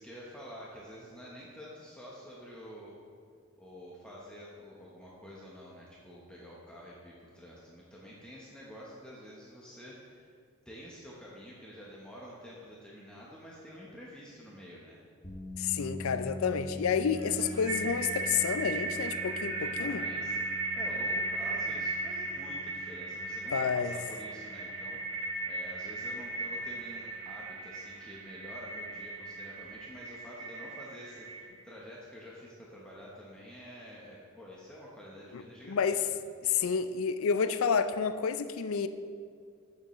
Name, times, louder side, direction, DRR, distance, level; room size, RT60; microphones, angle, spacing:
voice 1, 0.0-3.0 3.6-10.3 10.6-15.0 19.6-36.0, equal, 5° left, 1.0 m, -48 dB
sound 1, 15.2-29.5, left 2 dB, 20° left, 1.3 m, -46 dB
voice 2, 15.6-20.0 23.5-23.9 35.3-35.4 35.7-36.0 36.4-38.9, left 6 dB, 70° left, 0.4 m, -29 dB
sound 2, 17.2-31.5, right 2 dB, 65° right, 1.4 m, -37 dB
15.0 x 6.7 x 3.1 m
head